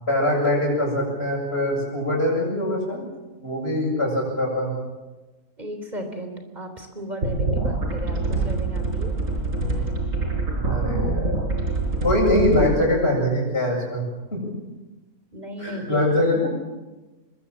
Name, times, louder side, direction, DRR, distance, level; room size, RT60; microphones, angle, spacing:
voice 1, 0.1-3.1 3.4-4.8 10.6-11.4 12.0-14.0 14.3-14.4 15.6-16.5, left 1 dB, 40° left, -1 dB, 8.1 m, -23 dB
voice 2, 5.6-9.1 15.3-16.3, right 1 dB, 25° right, 6 dB, 3.8 m, -35 dB
sound 1, 7.2-12.6, right 3 dB, 55° right, 5.4 m, -25 dB
24.5 x 22.0 x 7.4 m, 1.2 s
omnidirectional pair, 1.6 m